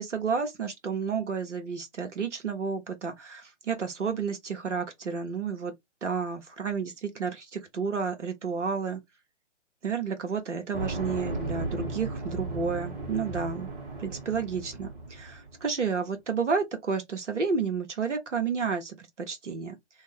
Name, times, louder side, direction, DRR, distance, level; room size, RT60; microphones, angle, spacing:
voice 1, 0.0-5.7 6.0-9.0 9.8-13.7 14.0-19.8, right 5 dB, 75° right, 0.9 m, -31 dB
sound 1, 10.7-15.7, right 2 dB, 45° right, 1.3 m, -35 dB
2.6 x 2.0 x 3.1 m
figure-of-eight pair, 135°, 36 cm